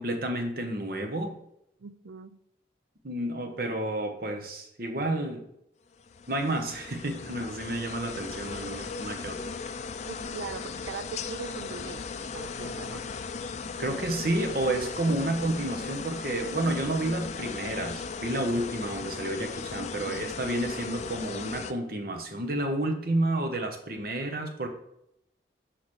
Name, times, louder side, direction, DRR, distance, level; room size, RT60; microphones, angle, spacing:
voice 1, 0.0-1.3 3.0-5.5 6.3-9.5 13.8-24.7, right 1 dB, 55° right, 5 dB, 1.0 m, -30 dB
voice 2, 1.8-2.4 10.1-13.0, right 6 dB, 85° right, 13 dB, 0.4 m, -41 dB
sound 1, 5.9-21.7, left 5 dB, 40° left, 0.3 m, -37 dB
6.4 x 5.9 x 3.2 m, 0.79 s
head